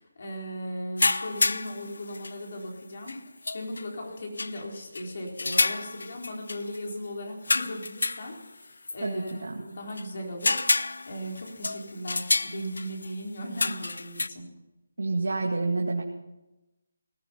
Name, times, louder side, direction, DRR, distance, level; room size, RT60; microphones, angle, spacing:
voice 1, 0.0-3.2 3.5-14.5, equal, 50° left, 0 dB, 4.3 m, -37 dB
sound 1, 1.0-2.3 3.1-3.2 3.4-3.9 4.4-4.6 5.0-5.1 5.4-6.8 7.4-9.0 9.3-9.4 9.9-10.0 10.4-13.1 13.6-14.3, left 3 dB, 80° left, 0.5 m, -29 dB
voice 2, 9.0-9.6 15.0-16.0, right 3 dB, 90° right, 0 dB, 2.2 m, -28 dB
18.5 x 13.0 x 5.7 m, 0.97 s
hypercardioid pair, 170°, 0 cm